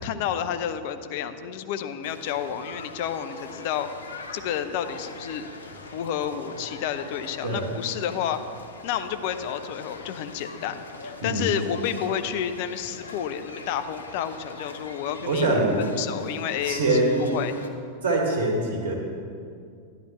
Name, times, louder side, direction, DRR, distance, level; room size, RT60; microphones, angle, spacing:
voice 1, 0.0-3.9 4.3-5.5 5.9-8.4 8.8-15.5 15.8-17.1 17.3-17.5, left 9 dB, 50° left, 10 dB, 0.5 m, -30 dB
sound 1, 2.0-17.7, left 3 dB, 75° left, 0.8 m, -42 dB
voice 2, 15.3-15.8 16.6-17.2 18.0-18.9, right 2 dB, 60° right, 1 dB, 1.7 m, -23 dB
11.5 x 11.0 x 3.1 m, 2.3 s
figure-of-eight pair, 90°, 0 cm